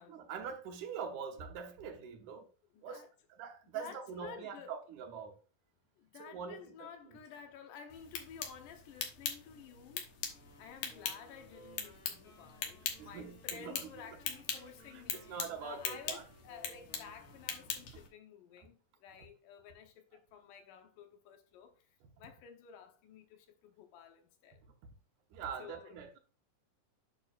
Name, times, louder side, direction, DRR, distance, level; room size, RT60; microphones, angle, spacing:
voice 1, 0.1-2.5 2.8-3.0 3.3-5.4 6.2-7.2 13.0-13.9 14.6-14.7 14.9-16.2 25.3-26.2, right 6 dB, 75° right, 2.4 m, -44 dB
voice 2, 2.7-3.1 3.7-4.7 6.0-10.1 10.6-21.9 22.2-24.6 25.6-26.0, left 7 dB, 80° left, 2.6 m, -53 dB
sound 1, 7.9-18.1, left 7 dB, 65° left, 2.1 m, -42 dB
sound 2, 10.2-18.2, right 1 dB, 40° left, 2.8 m, -61 dB
9.0 x 5.8 x 2.5 m
omnidirectional pair, 3.7 m